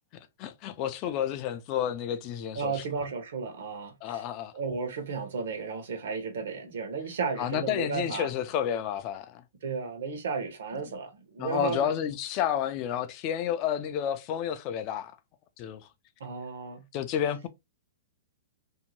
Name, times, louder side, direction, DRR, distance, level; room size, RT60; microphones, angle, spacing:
voice 1, 0.4-2.8 4.0-4.5 7.4-9.4 10.8-11.0 11.4-15.2 15.6-15.8 16.9-17.5, left 9 dB, 35° left, 0.3 m, -30 dB
voice 2, 2.6-4.2 4.5-8.3 9.6-11.9 16.2-16.8, right 5 dB, 75° right, 0.9 m, -34 dB
2.7 x 2.1 x 2.9 m
hypercardioid pair, 155°, 0 cm